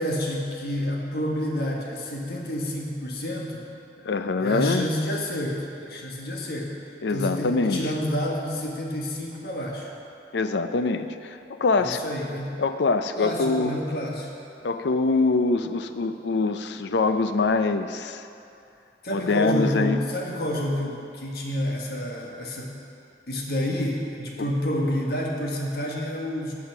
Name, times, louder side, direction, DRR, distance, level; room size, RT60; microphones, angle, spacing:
voice 1, 0.0-3.7 4.4-6.7 7.1-9.9 11.8-12.6 13.2-14.3 19.0-22.8 23.3-26.5, equal, 60° left, -1 dB, 1.5 m, -29 dB
voice 2, 4.0-4.9 7.0-7.8 10.3-12.0 12.6-13.7 14.6-18.2 19.1-20.0, left 3 dB, 80° left, 9 dB, 0.5 m, -24 dB
12.0 x 5.7 x 5.9 m, 2.6 s
head